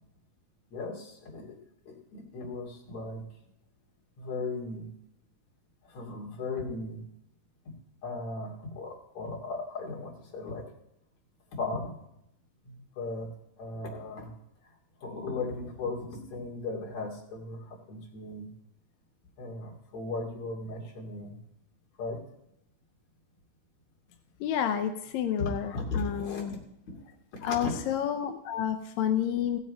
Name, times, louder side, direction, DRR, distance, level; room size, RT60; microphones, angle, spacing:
voice 1, 0.7-1.6 1.9-3.2 4.2-4.9 5.8-7.0 8.0-10.6 11.5-11.9 12.6-13.3 13.6-14.3 15.0-18.5 19.4-21.4 22.0-22.2 25.4-26.6 26.9-27.0 27.4-27.8, left 3 dB, 60° left, -3 dB, 3.9 m, -37 dB
voice 2, 24.4-26.6 27.4-29.6, left 9 dB, 75° left, 6 dB, 1.7 m, -30 dB
16.0 x 7.5 x 4.3 m, 0.77 s
omnidirectional pair, 3.8 m